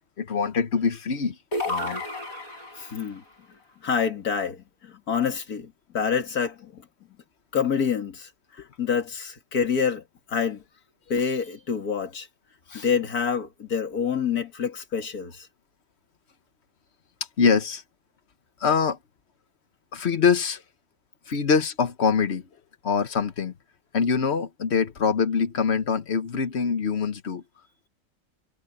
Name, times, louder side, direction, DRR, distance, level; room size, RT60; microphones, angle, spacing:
voice 1, 0.2-1.4 1.7-2.0 17.4-17.8 18.6-19.0 19.9-20.6 21.3-22.5 22.8-23.5 23.9-27.4, left 6 dB, 50° left, 1.3 m, -24 dB
sound 1, 1.5-3.1, left 1 dB, 65° left, 7.2 m, -31 dB
voice 2, 2.8-3.2 3.8-6.8 7.5-8.3 8.8-10.0 10.3-10.6 11.1-12.3 12.7-15.5, left 6 dB, 85° left, 2.5 m, -27 dB
omnidirectional pair, 1.5 m